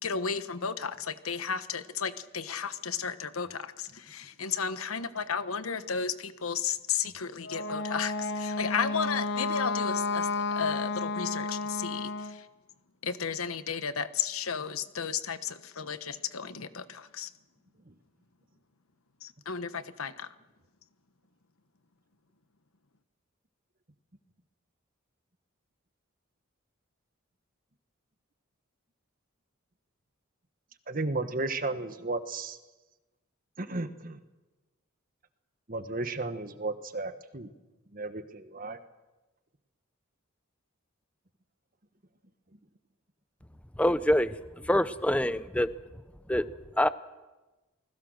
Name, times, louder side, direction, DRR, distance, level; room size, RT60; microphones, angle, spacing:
voice 1, 0.0-12.5 13.0-17.3 19.2-20.3, left 6 dB, 90° left, 1.2 m, -33 dB
Wind instrument woodwind instrument, 7.4-12.4, left 3 dB, 55° left, 1.1 m, -32 dB
voice 2, 30.9-32.6 33.6-34.2 35.7-37.5 37.9-38.8, right 2 dB, 40° right, 1.4 m, -34 dB
voice 3, 43.8-44.3 44.6-45.7 46.3-46.4 46.8-46.9, left 1 dB, 5° left, 0.7 m, -25 dB
29.0 x 20.5 x 6.5 m
head